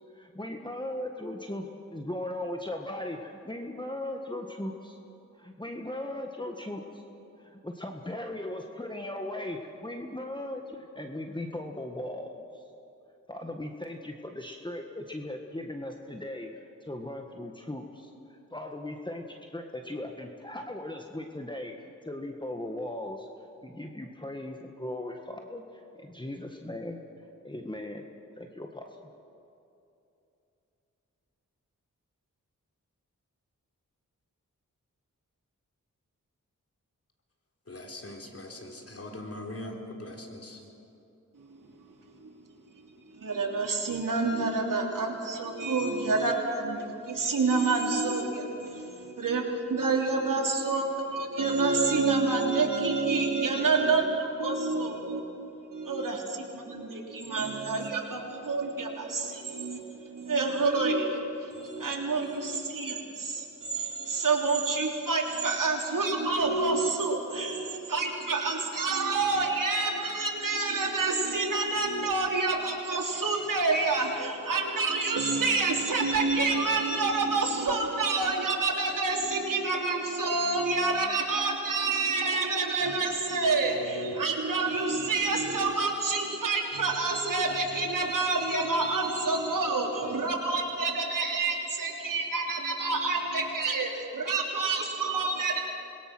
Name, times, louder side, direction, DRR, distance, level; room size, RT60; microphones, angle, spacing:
voice 1, 0.1-1.7 1.9-5.0 5.3-7.0 7.4-12.6 13.3-16.5 16.8-23.3 23.6-27.0 27.4-28.1 28.4-28.9, left 1 dB, 15° left, 1.6 m, -38 dB
voice 2, 37.7-40.6, left 1 dB, 45° left, 3.9 m, -41 dB
voice 3, 43.1-55.2 55.7-95.6, right 3 dB, 80° right, 3.4 m, -28 dB
27.0 x 21.5 x 6.2 m
cardioid pair, 50°, 32 cm